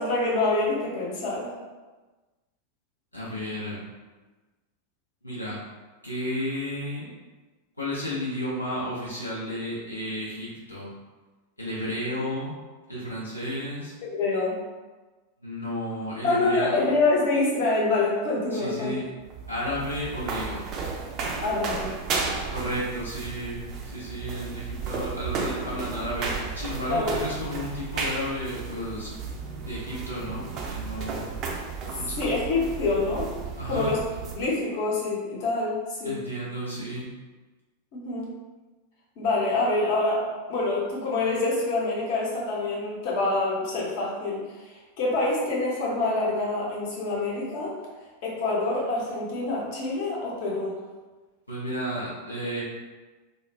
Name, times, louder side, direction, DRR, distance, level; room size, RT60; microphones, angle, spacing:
voice 1, 0.0-1.5 14.0-14.6 16.2-19.0 21.4-21.9 26.9-27.1 32.2-33.3 33.7-34.0 34.3-36.2 37.9-38.3 39.2-44.4 45.0-47.8 48.2-50.7, left 2 dB, 45° left, -5 dB, 0.7 m, -26 dB
voice 2, 3.1-3.8 5.2-5.6 6.0-7.1 7.8-10.9 11.6-12.5 12.9-13.9 15.4-16.8 18.5-19.1 19.5-20.6 22.5-29.1 29.7-31.3 31.9-32.3 33.6-33.9 36.0-37.1 51.5-52.6, equal, 85° left, -7 dB, 0.5 m, -32 dB
sound 1, 19.2-34.5, right 4 dB, 35° right, 0.4 m, -34 dB
2.3 x 2.0 x 3.2 m, 1.2 s
figure-of-eight pair, 90°, 0 cm